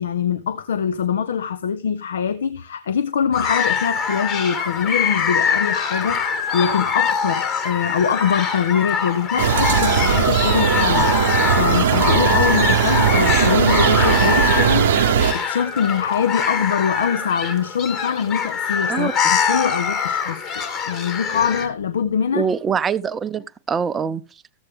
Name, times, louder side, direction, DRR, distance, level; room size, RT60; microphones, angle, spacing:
voice 1, 0.0-22.5, left 7 dB, 75° left, 0.6 m, -23 dB
sound 1, 3.3-21.7, left 6 dB, 40° left, 2.0 m, -23 dB
sound 2, 9.4-15.3, right 8 dB, 70° right, 0.8 m, -18 dB
voice 2, 22.3-24.2, right 6 dB, 20° right, 0.5 m, -23 dB
13.5 x 8.0 x 3.5 m
hypercardioid pair, 105°, 0 cm